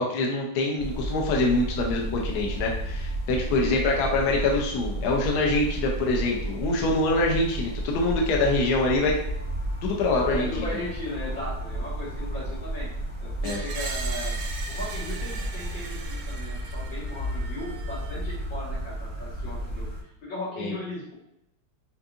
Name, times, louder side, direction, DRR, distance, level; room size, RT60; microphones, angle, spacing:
voice 1, 0.0-9.1 9.8-10.7 13.4-13.6 20.6-20.7, left 2 dB, 65° left, 0 dB, 1.1 m, -25 dB
sound 1, 0.8-20.0, right 1 dB, 25° left, 0.8 m, -32 dB
voice 2, 10.3-12.9 13.2-14.4 14.7-21.1, left 2 dB, 90° left, -7 dB, 2.3 m, -37 dB
Screech, 13.4-18.4, right 4 dB, 75° right, 1.2 m, -39 dB
5.3 x 2.5 x 2.5 m, 0.79 s
omnidirectional pair, 2.0 m